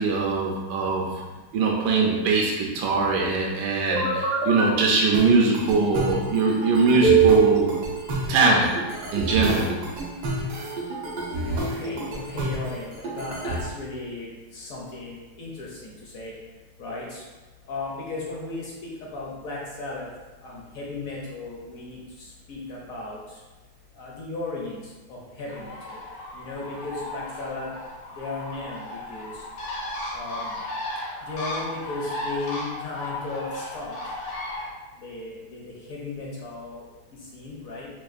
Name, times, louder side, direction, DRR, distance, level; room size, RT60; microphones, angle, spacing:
voice 1, 0.0-1.1 1.5-7.7 8.3-8.7 9.1-9.7, right 3 dB, 75° right, -1 dB, 1.1 m, -22 dB
sound 1, 3.9-4.7 5.1-13.6, right 5 dB, 90° right, 1.6 m, -26 dB
voice 2, 11.5-16.3 16.8-17.2 17.7-20.1 20.4-23.4 23.9-26.0 26.3-27.7 28.1-29.4 30.1-30.6 31.2-34.0 35.0-36.8 37.1-37.9, left 2 dB, 65° left, -4 dB, 0.9 m, -36 dB
Bird, 25.5-34.7, left 1 dB, 80° left, 1.6 m, -35 dB
6.0 x 2.3 x 2.5 m, 1.2 s
omnidirectional pair, 2.2 m